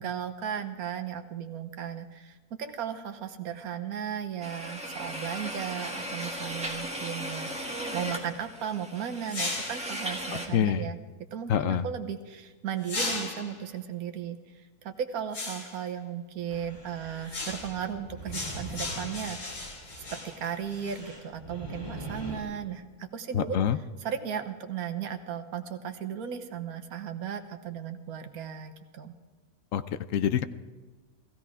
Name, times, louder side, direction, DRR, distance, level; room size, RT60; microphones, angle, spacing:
voice 1, 0.0-11.0 11.3-23.6 24.0-29.2, right 8 dB, 70° right, 7 dB, 1.4 m, -36 dB
sound 1, 4.4-10.5, equal, 5° right, 1.7 m, -37 dB
sound 2, 9.3-10.0 12.8-13.6 15.3-15.8 17.3-17.9 18.3-21.0, left 2 dB, 85° left, 2.7 m, -36 dB
voice 2, 10.5-10.9 11.5-11.8 23.3-23.8 29.7-30.4, left 9 dB, 65° left, 13 dB, 0.9 m, -26 dB
sound 3, 16.5-22.4, right 2 dB, 10° left, 4.2 m, -43 dB
16.5 x 15.5 x 4.9 m, 1.3 s
omnidirectional pair, 1.6 m